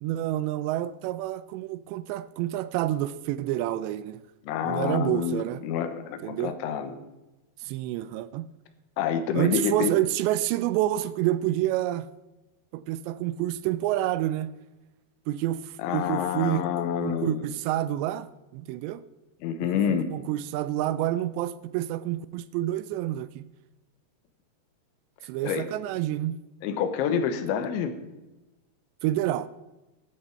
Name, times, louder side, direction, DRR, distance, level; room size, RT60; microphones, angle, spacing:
voice 1, 0.0-4.2 4.7-5.6 6.2-6.5 7.6-8.5 9.4-12.1 12.7-14.5 15.3-16.6 17.0-19.0 20.1-23.4 25.2-26.4 29.0-29.5, right 14 dB, 85° right, 2.7 m, -28 dB
voice 2, 4.4-6.9 9.0-9.9 15.8-17.4 19.4-20.1 25.4-25.7 26.6-28.0, left 8 dB, 85° left, 3.4 m, -28 dB
14.0 x 11.5 x 4.5 m
omnidirectional pair, 5.2 m